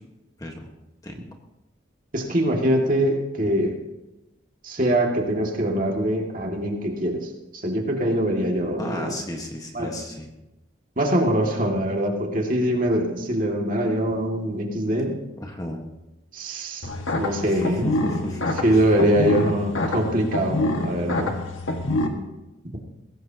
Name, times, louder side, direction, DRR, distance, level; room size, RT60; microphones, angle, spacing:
voice 1, 2.1-3.8 4.6-9.1 9.7-9.9 11.0-15.2 16.3-16.9 17.2-17.9 18.6-21.4, right 1 dB, 40° right, 0 dB, 2.1 m, -23 dB
voice 2, 8.8-10.3 15.4-15.9 17.4-18.6, left 1 dB, 20° left, 2 dB, 1.4 m, -34 dB
sound 1, 16.8-22.1, left 2 dB, 90° left, 1.8 m, -26 dB
21.0 x 17.0 x 2.9 m, 0.97 s
head